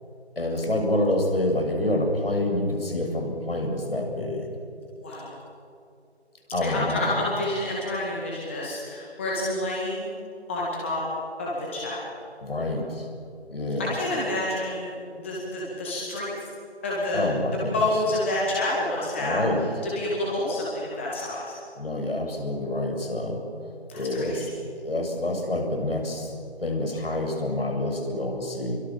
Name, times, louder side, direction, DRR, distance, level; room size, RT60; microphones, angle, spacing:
voice 1, 0.4-4.5 6.5-7.1 12.4-13.1 13.5-13.9 17.1-17.8 19.2-19.6 21.8-23.4 23.9-24.4 24.8-26.3 26.6-28.8, left 1 dB, 60° left, 2 dB, 7.2 m, -27 dB
voice 2, 5.0-5.3 6.6-10.1 10.5-11.0 11.4-12.0 13.8-16.3 16.8-21.5 23.9-24.5, left 1 dB, 10° left, -5 dB, 2.0 m, -29 dB
29.0 x 23.5 x 7.4 m, 2.5 s
figure-of-eight pair, 165°, 34 cm